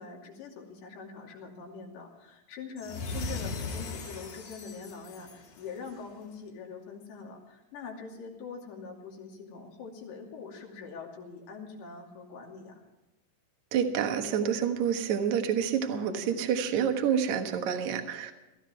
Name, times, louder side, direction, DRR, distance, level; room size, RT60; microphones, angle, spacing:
voice 1, 0.0-12.8, left 5 dB, 80° left, -1 dB, 4.9 m, -43 dB
sound 1, 2.8-6.1, left 3 dB, 50° left, 3.3 m, -38 dB
voice 2, 13.7-18.3, right 8 dB, 65° right, 6 dB, 1.9 m, -28 dB
18.5 x 14.0 x 4.5 m, 1.0 s
omnidirectional pair, 5.1 m